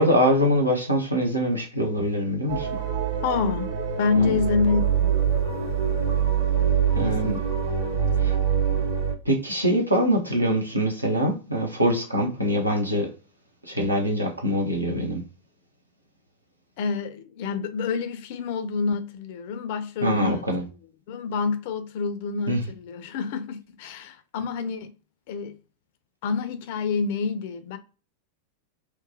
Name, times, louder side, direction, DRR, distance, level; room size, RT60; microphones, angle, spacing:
voice 1, 0.0-2.7 4.2-4.4 6.9-7.4 8.2-8.4 9.2-13.1 13.7-15.2 20.0-20.6 22.5-22.6, equal, 85° right, 0.6 m, -23 dB
sound 1, 2.5-9.1, right 7 dB, 60° right, 1.3 m, -24 dB
voice 2, 3.2-3.7 4.0-5.1 7.0-7.5 7.9-8.3 16.8-20.5 21.1-24.9 25.3-25.6 26.2-27.8, left 5 dB, 50° left, 0.4 m, -27 dB
3.0 x 2.2 x 2.5 m
figure-of-eight pair, 90°, 0 cm